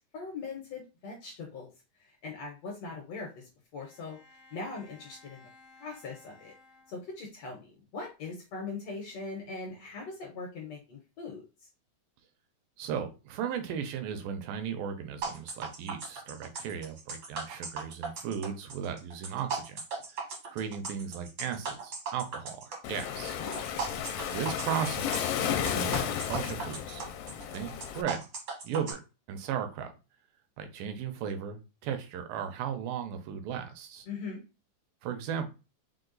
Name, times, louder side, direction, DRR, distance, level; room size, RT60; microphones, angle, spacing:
voice 1, 0.1-1.7 2.0-3.4 3.7-4.2 4.5-5.5 5.8-6.5 6.9-11.7 23.4-23.7 34.1-34.4, left 4 dB, 70° left, 1 dB, 1.7 m, -41 dB
Bowed string instrument, 3.8-7.5, left 3 dB, 45° left, 0.4 m, -58 dB
voice 2, 12.8-19.8 20.5-23.4 24.3-27.1 27.5-28.2 28.6-29.0 29.3-29.9 30.6-34.1 35.0-35.5, right 8 dB, 85° right, 7 dB, 2.5 m, -36 dB
sound 1, 15.2-28.9, right 4 dB, 65° right, 1.1 m, -38 dB
Waves surf, 22.8-28.0, left 9 dB, 85° left, 2.2 m, -33 dB
5.7 x 2.2 x 3.9 m, 0.30 s
omnidirectional pair, 4.0 m